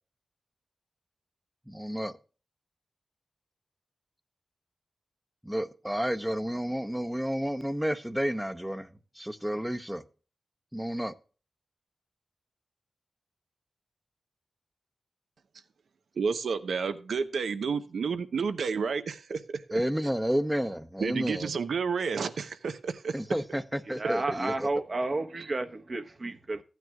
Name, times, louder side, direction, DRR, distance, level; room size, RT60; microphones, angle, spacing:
voice 1, 1.7-2.2 5.4-8.9 9.1-10.0 10.7-11.1 19.7-21.5 23.1-24.7, equal, 5° right, 0.8 m, -31 dB
voice 2, 16.2-19.6 21.0-23.1 25.4-25.5, right 5 dB, 85° right, 0.8 m, -30 dB
voice 3, 23.9-26.6, right 2 dB, 45° right, 1.0 m, -32 dB
15.0 x 9.2 x 2.3 m
wide cardioid pair, 75°, 0 cm